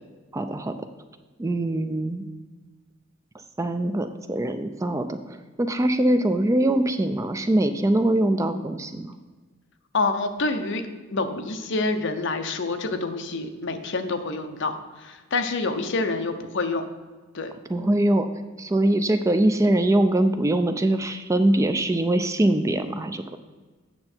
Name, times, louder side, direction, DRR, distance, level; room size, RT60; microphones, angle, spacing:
voice 1, 0.3-0.7 1.4-2.3 3.6-9.1 17.7-18.3 18.6-23.4, right 1 dB, 15° right, 9 dB, 0.3 m, -23 dB
voice 2, 9.9-10.8 11.1-16.8 17.3-17.5, left 3 dB, 60° left, 7 dB, 0.7 m, -27 dB
8.6 x 6.6 x 4.4 m, 1.3 s
head